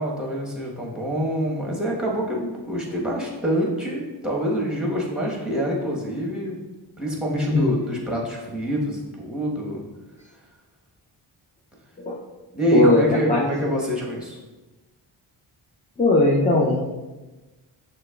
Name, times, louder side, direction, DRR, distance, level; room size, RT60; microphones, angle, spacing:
voice 1, 0.0-6.6 7.0-9.8 12.5-14.4, equal, ahead, -3 dB, 1.4 m, -26 dB
voice 2, 12.7-13.7 16.0-16.8, left 2 dB, 15° left, -5 dB, 0.6 m, -19 dB
6.4 x 2.3 x 2.4 m, 1.2 s
cardioid pair, 50°, 50 cm